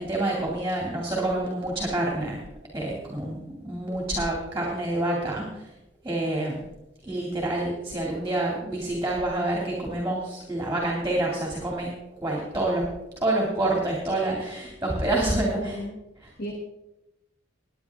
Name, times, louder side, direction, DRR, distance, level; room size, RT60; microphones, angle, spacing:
voice 1, 0.0-2.4 2.7-5.6 6.0-6.6 7.0-11.9 12.2-12.9 13.2-15.8, right 1 dB, 15° right, -2 dB, 2.4 m, -27 dB
voice 2, 15.2-16.0 16.4-16.5, left 1 dB, 50° left, 2 dB, 1.3 m, -35 dB
19.5 x 9.7 x 3.6 m, 0.94 s
head